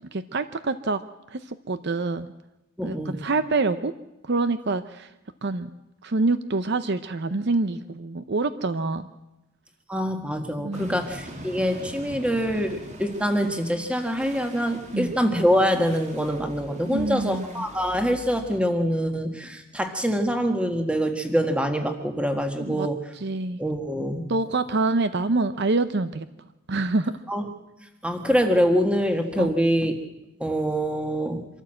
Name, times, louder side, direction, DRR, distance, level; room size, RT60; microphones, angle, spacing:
voice 1, 0.1-1.0 1.3-2.3 2.8-3.9 4.2-5.1 5.4-5.7 6.0-9.1 10.6-11.0 14.9-15.1 16.8-17.7 22.6-22.9 23.1-23.6 24.3-26.3 26.7-27.1 29.4-29.5, right 3 dB, 50° right, 12 dB, 0.7 m, -26 dB
voice 2, 2.8-3.2 9.9-23.0 23.6-24.2 27.3-27.4 28.0-29.9 30.4-31.5, equal, 5° right, 5 dB, 1.6 m, -25 dB
sound 1, 10.7-18.6, right 1 dB, 35° right, 2.4 m, -43 dB
25.5 x 13.5 x 7.7 m, 0.96 s
head